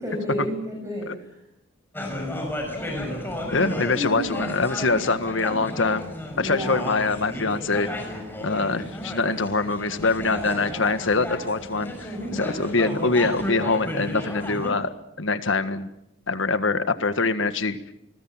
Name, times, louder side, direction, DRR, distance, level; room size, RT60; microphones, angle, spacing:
voice 1, 0.0-1.3 3.9-4.3 6.3-6.8 10.3-11.0 12.1-12.7, left 1 dB, 15° right, -1 dB, 6.7 m, -32 dB
sound 1, 1.9-14.7, left 1 dB, 10° left, 5.9 m, -33 dB
voice 2, 3.5-6.0 6.4-7.9 8.4-15.9 16.3-17.8, left 3 dB, 85° left, 11 dB, 1.6 m, -24 dB
28.5 x 20.0 x 7.3 m, 0.82 s
head